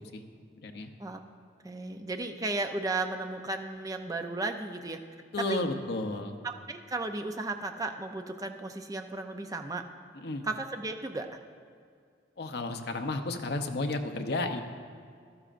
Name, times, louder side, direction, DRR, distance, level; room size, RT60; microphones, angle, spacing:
voice 1, 0.6-0.9 5.3-6.4 10.1-10.5 12.4-14.6, left 2 dB, 60° left, 5 dB, 0.7 m, -32 dB
voice 2, 1.6-5.0 5.5-5.7 6.4-9.8 10.4-11.4, right 2 dB, 20° right, 6 dB, 0.5 m, -34 dB
15.0 x 12.0 x 2.5 m, 2.1 s
head